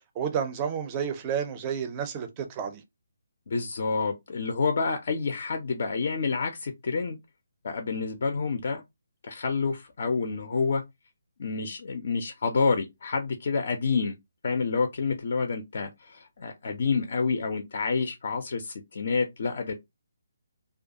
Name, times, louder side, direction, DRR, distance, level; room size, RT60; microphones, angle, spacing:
voice 1, 0.2-2.8, right 7 dB, 25° right, 0.4 m, -30 dB
voice 2, 3.5-7.2 7.6-8.8 9.2-10.8 11.4-14.2 14.4-19.7, left 4 dB, 45° left, 0.4 m, -28 dB
2.3 x 2.2 x 2.6 m
figure-of-eight pair, 140°, 0 cm